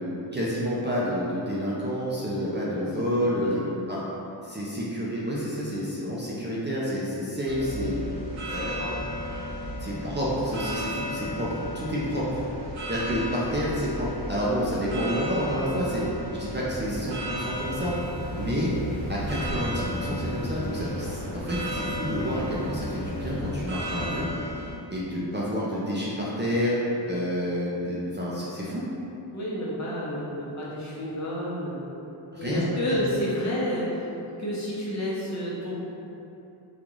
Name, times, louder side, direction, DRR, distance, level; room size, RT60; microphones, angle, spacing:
voice 1, 0.0-3.6 3.9-4.0 4.4-8.0 8.4-9.1 9.8-11.5 11.7-12.4 12.9-16.0 16.3-17.9 18.4-18.7 19.1-21.2 21.5-24.3 24.9-26.7 27.0-28.9 32.3-33.0, equal, 25° right, -7 dB, 0.5 m, -29 dB
voice 2, 2.4-2.9 3.1-3.6 8.5-8.9 29.3-31.9 32.4-34.1 34.4-35.8, left 1 dB, 40° left, -7 dB, 0.8 m, -30 dB
sound 1, 7.4-24.7, equal, 85° right, 1.0 m, -34 dB
sound 2, 17.5-24.2, left 1 dB, 75° left, 0.7 m, -38 dB
3.8 x 2.4 x 3.0 m, 3.0 s
cardioid pair, 90°, 46 cm